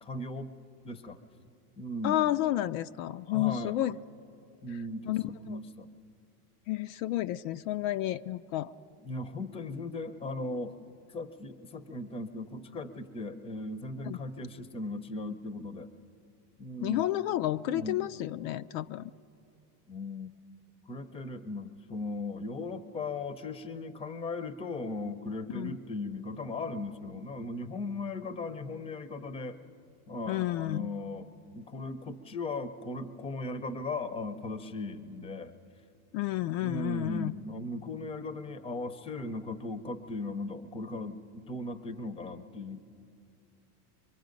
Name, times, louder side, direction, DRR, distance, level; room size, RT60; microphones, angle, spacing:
voice 1, 0.0-0.5 0.8-1.4 1.8-2.2 3.3-3.7 4.6-5.9 9.0-10.8 11.1-15.9 16.6-17.1 17.6-18.0 19.9-20.3 20.9-29.6 30.1-35.5 36.6-42.8, left 2 dB, 10° left, 12 dB, 0.6 m, -38 dB
voice 2, 2.0-4.0 5.0-5.2 6.7-8.7 14.1-14.2 16.8-19.1 25.5-25.8 30.3-30.9 36.1-37.3, left 14 dB, 65° left, 11 dB, 0.5 m, -31 dB
24.5 x 23.5 x 5.2 m, 2.6 s
supercardioid pair, 135°, 46 cm